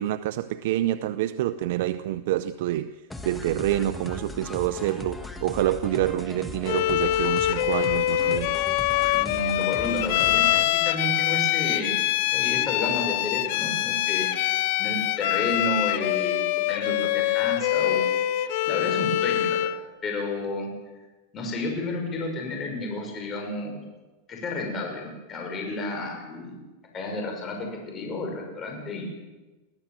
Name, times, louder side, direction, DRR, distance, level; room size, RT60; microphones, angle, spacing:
voice 1, 0.0-2.9 3.2-8.7, right 13 dB, 65° right, 12 dB, 0.7 m, -27 dB
sound 1, 3.1-10.6, left 2 dB, 5° left, 1.6 m, -38 dB
Bowed string instrument, 6.7-19.8, left 14 dB, 60° left, 1.0 m, -24 dB
voice 2, 9.1-12.0 12.3-16.4 16.7-18.0 18.7-19.7 20.0-20.7 21.3-23.8 24.3-26.6 26.9-29.0, left 2 dB, 25° left, 1 dB, 6.1 m, -31 dB
22.5 x 15.0 x 7.6 m, 1.2 s
supercardioid pair, 140°, 0 cm